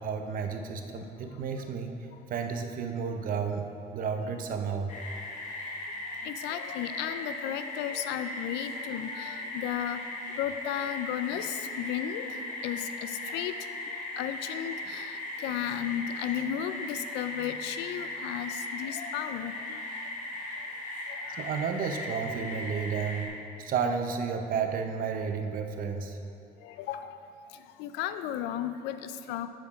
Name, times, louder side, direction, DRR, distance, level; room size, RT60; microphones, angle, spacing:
voice 1, 0.0-2.0 2.3-3.6 3.9-4.9 21.4-23.3 23.6-26.2, right 6 dB, 55° right, 6 dB, 0.7 m, -32 dB
sound 1, 4.9-23.3, left 2 dB, 45° left, 1.5 m, -38 dB
voice 2, 6.2-10.0 10.4-12.4 12.6-13.7 14.2-20.1 21.2-21.6 26.6-27.2 27.8-29.5, left 10 dB, 90° left, 11 dB, 0.4 m, -34 dB
8.8 x 4.4 x 5.0 m, 2.6 s
cardioid pair, 110°, 17 cm